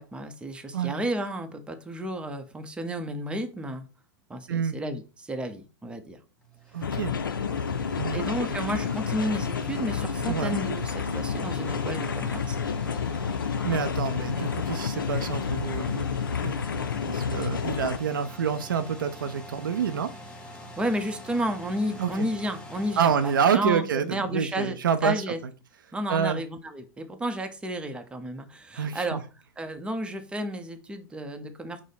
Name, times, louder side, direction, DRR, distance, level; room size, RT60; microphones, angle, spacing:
voice 1, 0.0-3.9 4.3-6.2 8.1-12.6 20.8-24.8 25.0-25.4 25.9-29.2 29.6-31.8, equal, 10° right, 6 dB, 0.6 m, -32 dB
sound 1, 6.4-24.5, equal, 10° left, 1.1 m, -45 dB
voice 2, 6.7-7.1 8.0-8.2 10.3-10.6 13.6-16.0 16.4-16.6 17.1-20.1 22.0-22.3 23.0-25.2 26.1-26.4 28.7-29.2, right 7 dB, 80° right, 10 dB, 0.4 m, -27 dB
sound 2, 6.8-18.0, left 6 dB, 90° left, 0.4 m, -30 dB
4.9 x 2.0 x 4.0 m, 0.33 s
hypercardioid pair, 100°, 11 cm